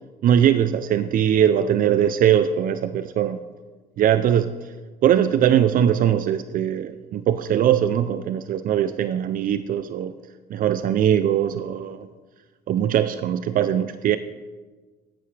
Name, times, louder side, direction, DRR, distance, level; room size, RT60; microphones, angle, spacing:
voice 1, 0.2-3.4 4.0-4.6 5.0-10.1 10.5-12.1 12.7-14.2, right 10 dB, 55° right, 12 dB, 0.5 m, -21 dB
14.0 x 10.0 x 3.3 m, 1.4 s
cardioid pair, 110°, 17 cm